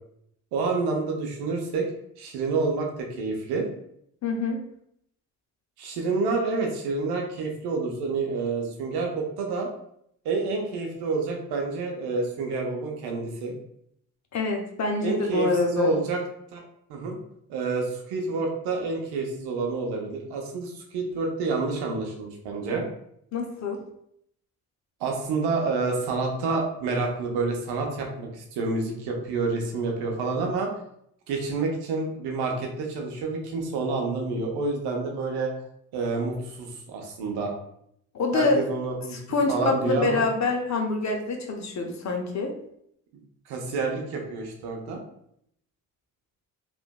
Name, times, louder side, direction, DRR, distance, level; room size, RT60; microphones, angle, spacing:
voice 1, 0.5-1.9 2.2-3.6 5.8-9.7 10.2-13.5 15.0-16.2 16.5-16.6 16.9-17.2 17.5-22.9 25.0-30.7 31.3-35.5 35.9-37.5 38.3-39.2 39.5-40.2 43.5-45.0, right 3 dB, 80° right, 1 dB, 0.7 m, -28 dB
voice 2, 4.2-4.6 14.3-15.9 23.3-23.8 38.1-38.6 39.1-42.5, left 3 dB, 45° left, 3 dB, 0.7 m, -26 dB
2.9 x 2.5 x 2.2 m, 0.72 s
hypercardioid pair, 45°, 38 cm